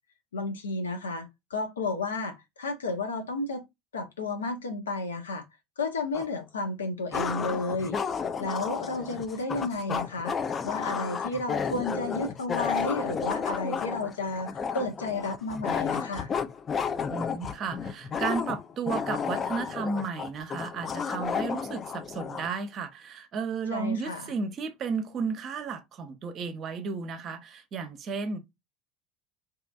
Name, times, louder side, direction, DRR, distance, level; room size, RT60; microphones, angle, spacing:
voice 1, 0.3-3.6 3.9-5.4 5.8-8.0 8.4-10.3 10.6-14.5 14.7-16.3 23.7-24.2, left 2 dB, 80° left, 0.7 m, -32 dB
sound 1, 6.1-6.2 7.1-22.5, left 6 dB, 30° left, 0.3 m, -32 dB
voice 2, 17.1-28.4, right 5 dB, 45° right, 0.6 m, -33 dB
2.8 x 2.4 x 2.3 m
figure-of-eight pair, 70°, 0 cm